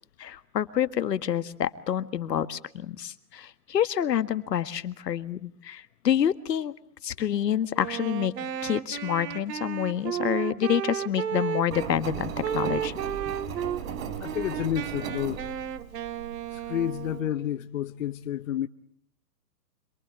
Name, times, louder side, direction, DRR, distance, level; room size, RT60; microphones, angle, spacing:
voice 1, 0.2-6.7 7.0-8.3 8.6-12.9, left 9 dB, 80° left, 1.8 m, -28 dB
Wind instrument woodwind instrument, 7.7-11.9 12.4-13.8 14.2-17.4, right 9 dB, 75° right, 2.1 m, -33 dB
Engine, 11.7-17.2, right 7 dB, 55° right, 3.5 m, -37 dB
voice 2, 14.2-15.5 16.5-18.7, left 11 dB, 50° left, 1.0 m, -30 dB
26.5 x 23.5 x 8.2 m
hypercardioid pair, 155°, 49 cm